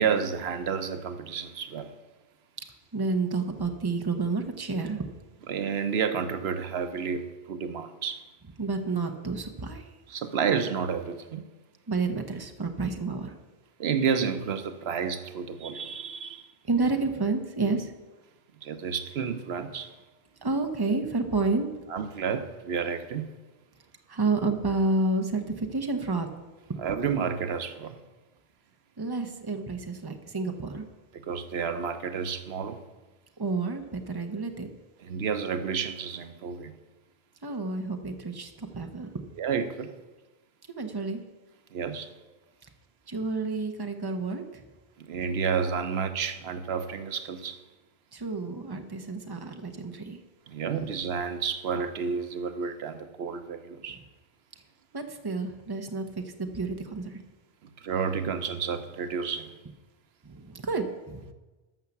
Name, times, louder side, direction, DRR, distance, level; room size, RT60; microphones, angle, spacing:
voice 1, 0.0-1.9 5.5-8.2 10.1-11.4 13.8-16.5 18.6-19.9 21.9-23.3 26.8-28.0 31.1-32.8 35.0-36.7 39.4-39.9 41.7-42.1 45.0-47.6 50.5-54.0 57.8-59.6, right 6 dB, 85° right, 10 dB, 1.0 m, -30 dB
voice 2, 2.9-5.1 8.6-9.8 11.9-13.3 16.7-17.9 20.4-21.7 24.1-26.3 26.7-26.8 29.0-30.8 33.4-34.7 37.4-39.1 40.7-41.2 43.1-44.6 48.1-50.2 54.9-56.2 56.5-57.1 60.2-61.3, right 3 dB, 25° right, 5 dB, 0.9 m, -30 dB
13.0 x 5.6 x 7.1 m, 1.2 s
omnidirectional pair, 1.0 m